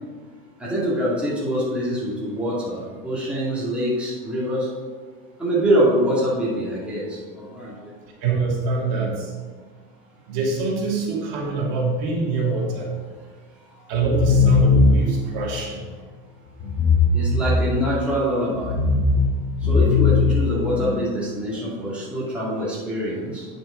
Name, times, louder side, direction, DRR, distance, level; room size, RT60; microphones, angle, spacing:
voice 1, 0.6-4.7 5.4-7.9 17.1-18.7 19.6-23.5, equal, 5° right, -8 dB, 2.0 m, -24 dB
voice 2, 8.2-9.3 10.3-12.9 13.9-15.9, right 4 dB, 55° right, -2 dB, 2.3 m, -24 dB
sound 1, 13.9-15.2 16.6-18.0 18.5-21.0, left 4 dB, 70° left, 1.5 m, -19 dB
9.3 x 5.2 x 4.9 m, 1.5 s
supercardioid pair, 150°, 36 cm